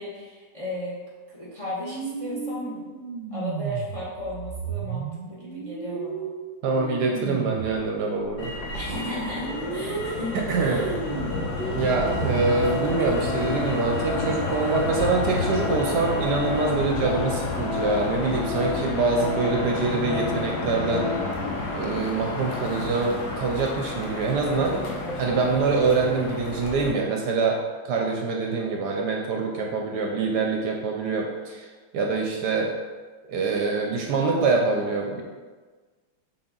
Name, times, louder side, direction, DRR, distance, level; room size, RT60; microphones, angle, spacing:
voice 1, 0.0-2.9 3.3-6.3 8.7-11.0, left 1 dB, 25° left, -6 dB, 0.9 m, -35 dB
sound 1, 1.8-7.8 8.2-13.2, right 6 dB, 90° right, 1.3 m, -34 dB
voice 2, 6.6-8.5 10.5-10.9 11.7-21.1 21.7-24.8 25.2-27.6 27.8-31.7 31.9-32.7 33.3-35.2, right 4 dB, 70° right, 1 dB, 1.1 m, -25 dB
Motor vehicle (road), 8.4-26.9, left 3 dB, 60° left, 1.4 m, -30 dB
Organ, 11.5-11.6 11.9-21.5 21.8-22.0, left 5 dB, 75° left, 0.8 m, -34 dB
6.0 x 4.1 x 3.8 m, 1.4 s
omnidirectional pair, 2.1 m